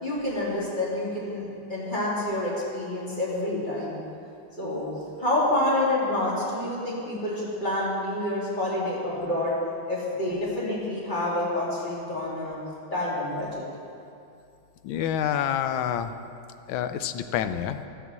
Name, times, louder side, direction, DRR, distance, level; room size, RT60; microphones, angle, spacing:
voice 1, 0.0-4.0 4.6-4.9 5.2-9.5 9.8-12.6 12.9-13.6, left 1 dB, 20° left, -7 dB, 3.3 m, -28 dB
voice 2, 14.8-16.1 16.7-17.9, left 9 dB, 80° left, 9 dB, 1.4 m, -27 dB
13.5 x 7.0 x 7.5 m, 2.5 s
omnidirectional pair, 2.2 m